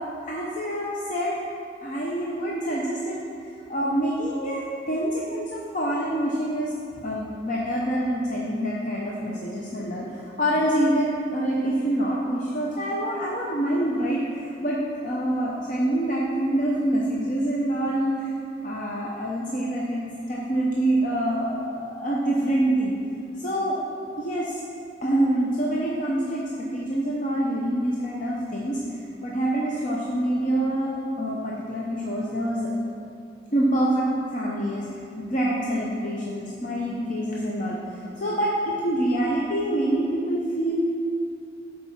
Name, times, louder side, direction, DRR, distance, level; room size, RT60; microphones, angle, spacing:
voice 1, 0.0-1.5 1.8-3.2 3.7-6.7 7.0-18.3 18.6-20.0 20.3-22.9 23.4-23.8 24.2-24.6 25.0-32.7 33.5-40.9, right 1 dB, 45° left, -5 dB, 0.7 m, -26 dB
7.2 x 4.8 x 5.7 m, 2.4 s
head